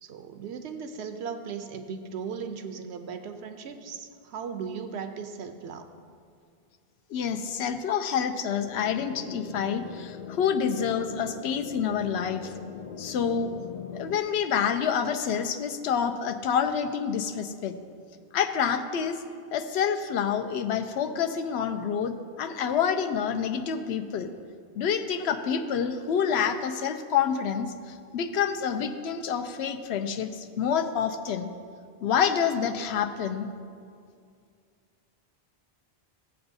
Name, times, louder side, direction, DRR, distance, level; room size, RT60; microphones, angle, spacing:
voice 1, 0.0-5.9, right 6 dB, 90° right, 7 dB, 0.9 m, -37 dB
voice 2, 7.1-12.5 13.0-13.5 13.9-17.8 18.3-19.2 19.5-24.3 24.8-31.5 32.0-33.5, left 7 dB, 80° left, 8 dB, 0.9 m, -28 dB
sound 1, 8.7-14.2, left 7 dB, 55° left, 0.6 m, -41 dB
15.5 x 7.8 x 2.7 m, 2.3 s
omnidirectional pair, 1.1 m